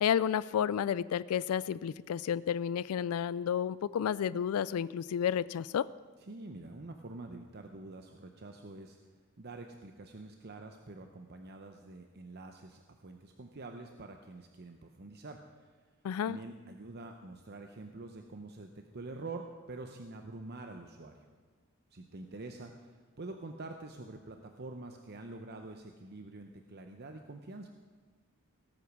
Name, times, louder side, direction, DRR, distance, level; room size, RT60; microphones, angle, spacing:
voice 1, 0.0-5.9 16.0-16.4, left 8 dB, 85° left, 18 dB, 0.3 m, -31 dB
voice 2, 6.2-9.0 9.4-15.7 16.2-21.3 21.9-27.7, right 2 dB, 50° right, 5 dB, 0.8 m, -46 dB
18.5 x 8.4 x 6.1 m, 1.5 s
head